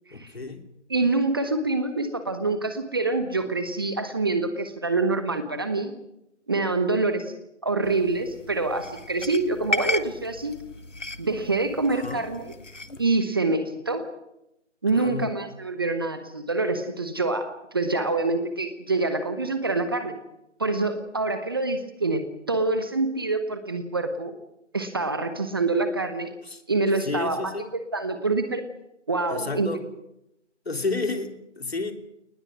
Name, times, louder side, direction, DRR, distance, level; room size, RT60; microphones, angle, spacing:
voice 1, 0.1-0.6 11.9-12.2 14.9-15.3 26.5-26.6 27.0-27.7 29.3-29.8 30.6-31.9, left 3 dB, 55° left, 6 dB, 3.2 m, -31 dB
voice 2, 0.9-5.9 6.5-7.3 7.6-10.5 11.2-12.5 13.0-14.1 14.8-20.1 20.6-24.3 24.7-26.3 26.7-28.6 29.1-29.7, right 3 dB, 20° right, 9 dB, 1.0 m, -26 dB
sound 1, 7.8-13.0, left 2 dB, 80° left, 1.5 m, -35 dB
29.5 x 20.0 x 6.2 m, 0.86 s
figure-of-eight pair, 155°, 37 cm